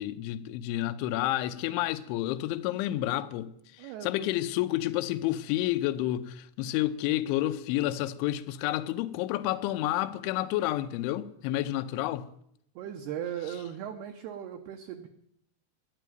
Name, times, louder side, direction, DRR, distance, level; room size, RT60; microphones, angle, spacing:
voice 1, 0.0-12.3, left 14 dB, 80° left, 2.9 m, -30 dB
voice 2, 3.8-4.3 12.8-15.1, right 10 dB, 75° right, 2.4 m, -38 dB
12.0 x 10.5 x 9.2 m
omnidirectional pair, 5.8 m